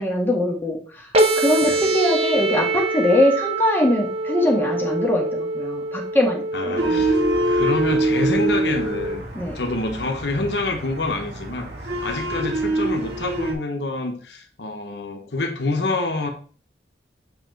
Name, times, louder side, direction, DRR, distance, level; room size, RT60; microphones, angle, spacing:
voice 1, 0.0-7.1 9.3-9.6, left 1 dB, 10° left, -1 dB, 1.9 m, -22 dB
sound 1, 1.1-9.2, right 2 dB, 35° right, 1.0 m, -25 dB
voice 2, 1.6-1.9 6.5-9.2 9.5-16.3, left 2 dB, 75° left, 4 dB, 1.1 m, -27 dB
sound 2, 6.8-13.5, right 2 dB, 80° right, 2.5 m, -25 dB
7.4 x 4.8 x 4.5 m, 0.42 s
head